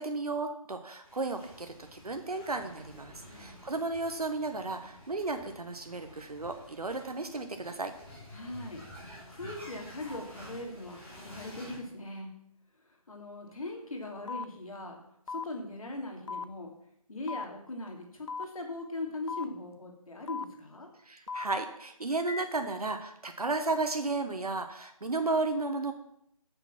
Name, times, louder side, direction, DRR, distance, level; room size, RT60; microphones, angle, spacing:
voice 1, 0.0-7.9 21.1-25.9, right 3 dB, 85° right, 6 dB, 1.2 m, -33 dB
sound 1, 1.0-11.8, left 1 dB, 10° left, 2.8 m, -50 dB
voice 2, 3.3-3.6 8.3-8.8 9.3-12.3 13.1-15.0 15.3-16.7 17.1-20.9, left 2 dB, 65° left, 1 dB, 2.8 m, -40 dB
sound 2, 14.3-14.4 15.3-15.4 16.3-16.5 17.3-17.5 18.3-18.5 19.3-19.5 20.3-20.4 21.3-21.4 22.3-22.4, left 5 dB, 50° left, 0.4 m, -36 dB
9.1 x 6.8 x 5.9 m, 0.75 s
figure-of-eight pair, 155°, 19 cm